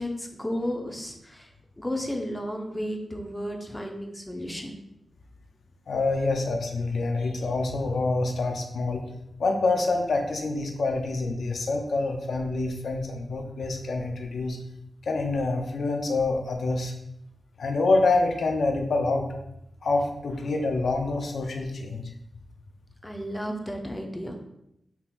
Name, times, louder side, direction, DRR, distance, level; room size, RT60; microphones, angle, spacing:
voice 1, 0.0-1.5 1.8-4.8 23.0-24.4, equal, 15° left, 2 dB, 0.6 m, -33 dB
voice 2, 5.9-9.0 9.4-14.6 15.0-16.9 17.6-19.3 19.8-22.1, left 3 dB, 75° left, 3 dB, 0.5 m, -26 dB
3.7 x 2.8 x 2.4 m, 0.80 s
cardioid pair, 50°, 0 cm